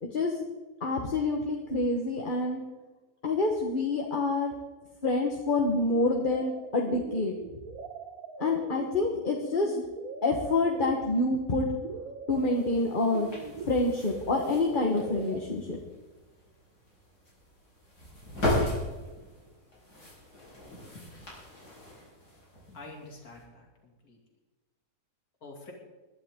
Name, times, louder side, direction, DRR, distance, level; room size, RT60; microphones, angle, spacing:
voice 1, 0.0-0.3 0.8-2.6 3.2-4.5 5.0-7.6 8.4-9.8 10.2-11.7 12.3-13.3 13.6-15.8, left 2 dB, 35° left, 1 dB, 1.4 m, -27 dB
sound 1, 5.8-15.4, right 5 dB, 65° right, 1.5 m, -42 dB
sound 2, 12.3-23.4, left 1 dB, 80° left, 6.1 m, -37 dB
voice 2, 22.7-24.2 25.4-25.7, left 2 dB, 65° left, 0 dB, 3.0 m, -47 dB
20.5 x 12.0 x 3.7 m, 1.2 s
omnidirectional pair, 1.7 m